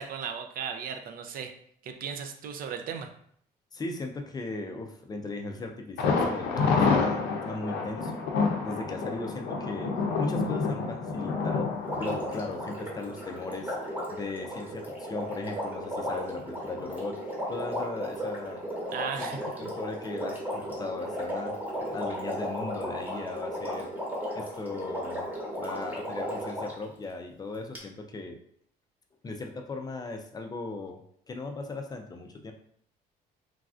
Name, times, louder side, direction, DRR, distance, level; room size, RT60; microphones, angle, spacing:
voice 1, 0.0-1.5 1.8-3.1 18.9-19.7, right 7 dB, 60° right, 6 dB, 0.4 m, -36 dB
voice 2, 3.7-8.2 8.6-13.8 14.1-17.2 17.5-18.6 19.2-21.6 21.9-23.9 24.3-28.4 29.2-31.0 31.3-32.5, left 3 dB, 25° left, 4 dB, 0.3 m, -38 dB
Thunder, 6.0-13.7 14.0-14.1 14.6-14.7, left 4 dB, 85° left, 0.5 m, -28 dB
Water, 11.8-26.8 27.8-27.9, equal, 10° right, 1.0 m, -35 dB
3.2 x 2.4 x 2.4 m, 0.65 s
cardioid pair, 110°, 17 cm